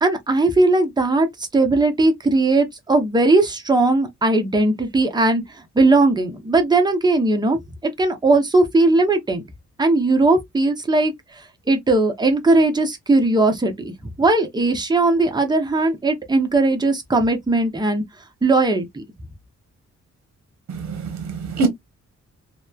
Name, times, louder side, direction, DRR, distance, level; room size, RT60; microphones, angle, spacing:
voice 1, 0.0-7.6 8.0-9.4 9.8-18.0 18.4-19.0, right 2 dB, 15° right, 0.7 m, -18 dB
voice 2, 20.7-21.7, right 4 dB, 65° right, 0.9 m, -24 dB
2.9 x 2.1 x 2.2 m
cardioid pair, 90°, 29 cm